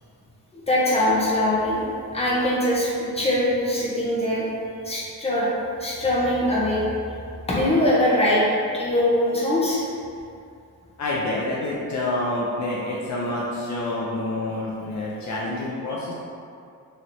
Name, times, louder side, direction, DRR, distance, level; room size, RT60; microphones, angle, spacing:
voice 1, 0.5-1.9 2.1-4.5 4.8-5.5 5.8-6.8 7.5-9.8, left 1 dB, 15° left, -6 dB, 0.7 m, -22 dB
voice 2, 11.0-16.1, left 2 dB, 50° left, -5 dB, 0.5 m, -27 dB
3.0 x 2.9 x 2.6 m, 2.4 s
cardioid pair, 100°, 37 cm